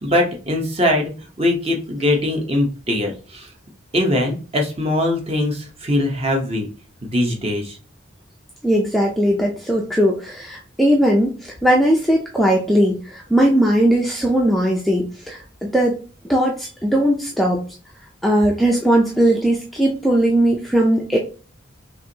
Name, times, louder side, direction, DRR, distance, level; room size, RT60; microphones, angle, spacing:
voice 1, 0.0-1.1 1.4-3.5 3.9-6.7 7.1-7.8, left 1 dB, 30° right, 2 dB, 0.9 m, -21 dB
voice 2, 8.6-11.3 11.6-15.4 15.7-16.0 16.3-17.6 18.2-21.2, right 1 dB, ahead, -1 dB, 0.4 m, -18 dB
5.8 x 2.6 x 2.8 m, 0.37 s
head